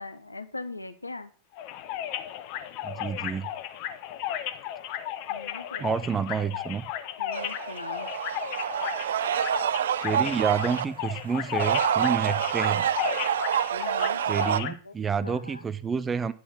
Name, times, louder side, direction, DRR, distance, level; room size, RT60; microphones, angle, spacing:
voice 1, 0.0-1.3 5.3-5.9 6.1-6.2 7.2-8.1 13.7-14.9 15.2-15.7, left 3 dB, 80° left, 11 dB, 0.8 m, -40 dB
Tropical Frogs - Ranas tropicales, 1.6-14.7, left 11 dB, 45° left, 0.9 m, -35 dB
voice 2, 2.8-3.5 5.8-6.8 10.0-12.9 14.3-16.3, right 6 dB, 20° right, 14 dB, 0.6 m, -29 dB
sound 1, 7.3-10.9 11.4-14.6, right 9 dB, 60° right, 0.4 m, -27 dB
9.6 x 6.4 x 6.0 m, 0.38 s
figure-of-eight pair, 90°, 0 cm